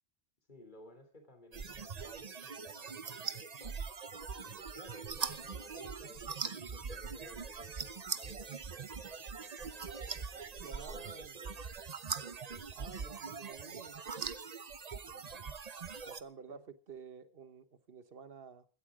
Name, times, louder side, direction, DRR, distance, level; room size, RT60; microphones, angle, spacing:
voice 1, 0.5-3.8 4.4-11.6 12.2-12.6 12.9-13.3 15.1-15.5 16.5-16.6, left 1 dB, 45° left, 6 dB, 3.5 m, -56 dB
sound 1, 1.5-16.2, right 5 dB, 40° right, 0.8 m, -42 dB
voice 2, 10.6-11.4 12.7-14.0 16.0-18.7, right 6 dB, 60° right, 12 dB, 1.4 m, -51 dB
16.5 x 13.0 x 5.0 m, 0.37 s
omnidirectional pair, 1.1 m